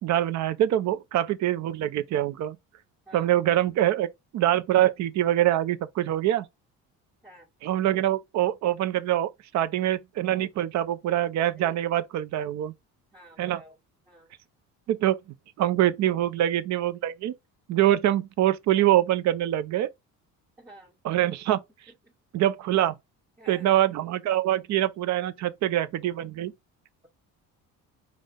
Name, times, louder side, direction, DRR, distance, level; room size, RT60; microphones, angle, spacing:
voice 1, 0.0-2.6 3.1-4.1 4.3-6.5 7.6-12.7 13.4-13.6 14.9-15.2 15.6-17.3 17.7-19.9 21.0-21.6 22.3-22.9 23.5-26.5, right 12 dB, 55° right, 0.7 m, -24 dB
voice 2, 13.1-13.8 14.1-14.3 20.6-21.0 21.9-22.1 23.4-23.8, right 1 dB, 10° right, 1.7 m, -50 dB
5.5 x 2.4 x 3.7 m
cardioid pair, 155°, 33 cm